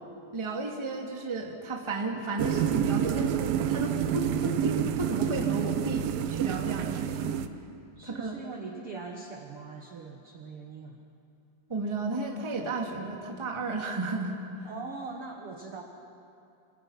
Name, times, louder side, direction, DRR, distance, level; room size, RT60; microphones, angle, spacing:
voice 1, 0.3-7.3 8.0-8.4 11.7-14.3, right 2 dB, 10° right, 0 dB, 1.5 m, -33 dB
sound 1, 2.4-7.5, right 10 dB, 80° right, 2.6 m, -28 dB
voice 2, 8.0-11.0 14.6-15.8, right 4 dB, 55° right, 2 dB, 1.6 m, -41 dB
27.5 x 26.5 x 5.7 m, 2.6 s
omnidirectional pair, 4.2 m